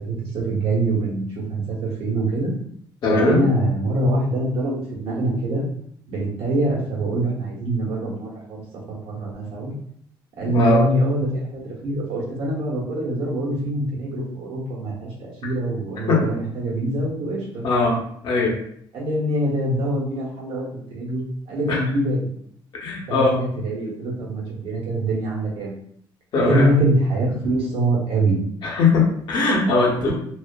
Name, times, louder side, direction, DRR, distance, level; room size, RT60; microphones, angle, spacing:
voice 1, 0.1-2.5 3.1-5.7 6.1-8.6 8.9-9.7 10.4-17.7 18.9-21.2 21.5-22.3 23.1-25.7 26.4-28.4 30.0-30.1, right 1 dB, 80° right, -4 dB, 0.9 m, -24 dB
voice 2, 3.0-3.4 10.5-10.8 16.1-16.3 17.6-18.0 18.2-18.5 21.7-21.8 22.8-23.4 26.3-26.7 28.6-30.1, left 3 dB, 55° left, -2 dB, 0.7 m, -20 dB
2.5 x 2.3 x 2.2 m, 0.67 s
cardioid pair, 155°, 9 cm